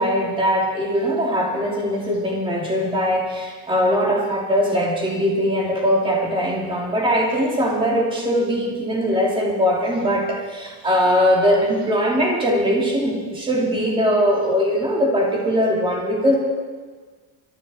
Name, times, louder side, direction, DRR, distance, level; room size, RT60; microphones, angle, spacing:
voice 1, 0.0-16.4, equal, 10° right, -2 dB, 2.9 m, -21 dB
23.0 x 13.5 x 4.5 m, 1.5 s
cardioid pair, 160°, 42 cm